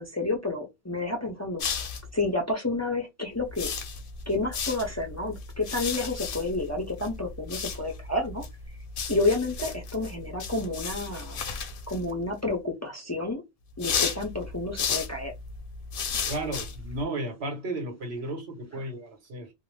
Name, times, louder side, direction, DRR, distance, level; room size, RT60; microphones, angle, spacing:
voice 1, 0.0-1.6 2.1-3.7 4.3-8.4 9.1-11.4 11.9-13.4 13.8-15.3, left 2 dB, 25° left, 0.4 m, -30 dB
sound 1, 1.6-2.2 3.4-12.3 13.7-17.0, left 6 dB, 65° left, 0.7 m, -34 dB
voice 2, 16.3-19.5, right 1 dB, 85° right, 1.2 m, -34 dB
2.6 x 2.0 x 3.1 m
omnidirectional pair, 1.1 m